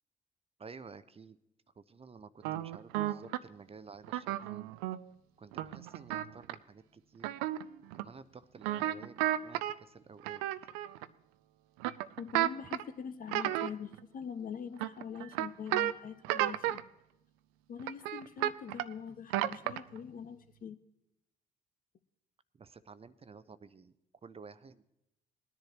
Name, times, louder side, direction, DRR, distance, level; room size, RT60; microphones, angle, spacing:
voice 1, 0.6-1.4 1.8-4.7 5.4-7.4 7.9-10.4 22.6-23.9 24.2-24.8, right 5 dB, 30° right, 13 dB, 0.6 m, -52 dB
sound 1, 2.4-3.4 4.0-5.0 5.5-6.5 7.2-7.7 7.9-8.0 8.6-9.7 10.2-11.0 11.8-12.8 13.3-14.0 14.8-15.9 16.2-16.8 17.8-18.9 19.3-20.0, right 14 dB, 75° right, 0.4 m, -32 dB
voice 2, 12.2-16.8 17.7-20.8, left 7 dB, 45° left, 12 dB, 0.7 m, -43 dB
20.0 x 10.5 x 3.0 m, 0.82 s
hypercardioid pair, 45°, 20 cm